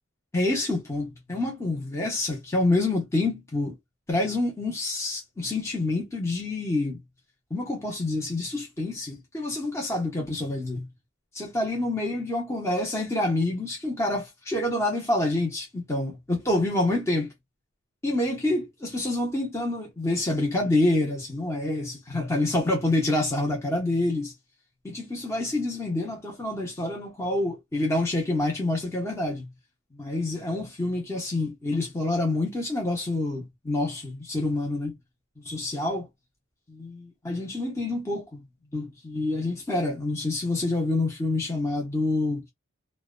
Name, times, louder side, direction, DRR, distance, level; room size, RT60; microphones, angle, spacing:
voice 1, 0.3-3.7 4.1-7.0 7.5-10.9 11.3-17.3 18.0-24.3 24.8-29.5 29.9-34.9 35.4-36.1 36.7-38.4 38.7-42.5, left 2 dB, 15° left, 0.7 m, -27 dB
2.6 x 2.1 x 2.4 m
head